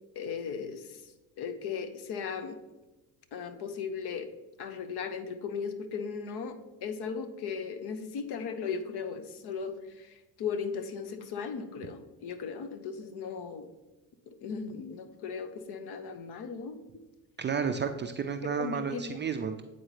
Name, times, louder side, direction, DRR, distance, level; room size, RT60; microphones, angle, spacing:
voice 1, 0.1-2.6 3.3-4.3 4.6-13.7 14.3-17.0 18.6-19.2, left 6 dB, 60° left, 9 dB, 0.8 m, -37 dB
voice 2, 17.4-19.6, right 6 dB, 25° right, 6 dB, 0.3 m, -32 dB
8.8 x 4.0 x 3.2 m, 1.1 s
supercardioid pair, 70°, 46 cm